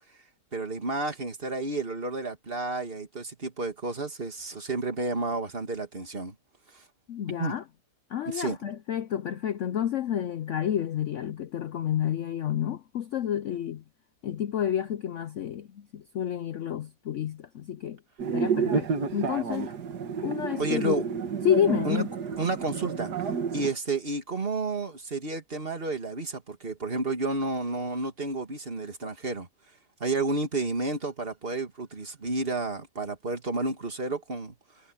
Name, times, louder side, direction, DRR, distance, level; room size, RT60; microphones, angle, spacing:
voice 1, 0.5-6.3 6.7-6.8 7.4-7.6 8.3-8.6 20.6-21.0 21.8-22.0 22.4-23.1 23.5-29.5 30.0-34.6, right 3 dB, 35° right, 2.4 m, -31 dB
voice 2, 7.1-7.6 8.1-13.8 14.2-18.0 18.3-19.7 20.2-21.0 21.4-22.1, left 10 dB, 65° left, 0.8 m, -29 dB
sound 1, 18.2-23.7, right 6 dB, 70° right, 2.1 m, -30 dB
omnidirectional pair, 1.8 m